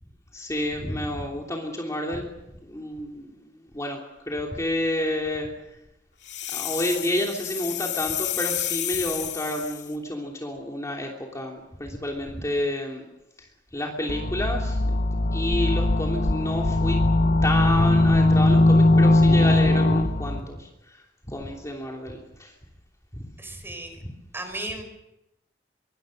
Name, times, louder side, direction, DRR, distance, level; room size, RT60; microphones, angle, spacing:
voice 1, 0.3-2.3 2.7-4.0 4.3-5.5 6.5-13.1 13.4-13.5 13.7-15.0 15.3-17.0 17.4-22.5 23.1-23.3 24.0-24.1, left 1 dB, 20° left, 0 dB, 3.1 m, -30 dB
sound 1, 6.2-9.9, left 12 dB, 75° left, 2.8 m, -31 dB
sound 2, 14.1-20.4, left 2 dB, 50° left, 1.0 m, -20 dB
voice 2, 23.4-24.0 24.3-24.8, right 2 dB, 15° right, 6 dB, 5.3 m, -35 dB
25.0 x 24.0 x 6.6 m, 0.90 s
head